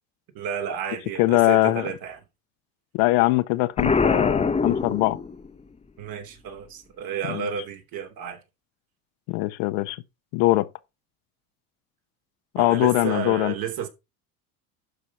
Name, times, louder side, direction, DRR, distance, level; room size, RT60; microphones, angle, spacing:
voice 1, 0.3-2.2 6.0-8.4 12.5-13.9, right 8 dB, 60° right, 3.2 m, -32 dB
voice 2, 1.2-1.9 2.9-5.2 7.3-7.5 9.3-10.0 10.3-10.7 12.5-13.5, left 19 dB, 70° left, 1.2 m, -22 dB
Explosion, 3.8-5.6, left 4 dB, 15° left, 1.1 m, -23 dB
12.0 x 4.5 x 5.6 m
supercardioid pair, 90°, 40 cm